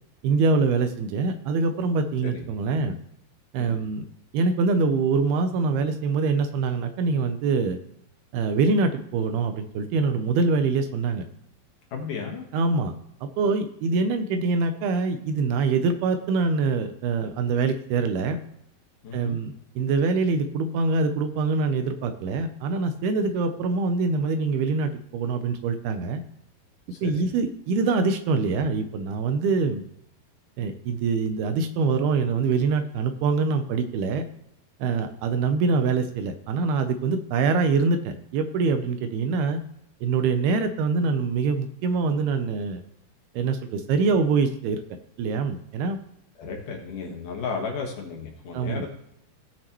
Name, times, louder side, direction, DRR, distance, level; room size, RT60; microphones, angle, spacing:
voice 1, 0.2-3.0 3.5-4.1 4.3-7.8 8.3-11.2 12.5-12.9 13.2-18.4 19.1-26.2 27.0-29.8 30.6-34.3 34.8-39.6 40.0-42.8 43.3-44.8 45.2-46.0 48.5-48.8, right 4 dB, 80° right, 8 dB, 2.6 m, -24 dB
voice 2, 11.9-12.5 19.0-19.4 26.9-27.2 46.4-48.9, left 5 dB, 60° left, 1 dB, 2.6 m, -34 dB
17.0 x 6.4 x 3.0 m, 0.74 s
omnidirectional pair, 4.8 m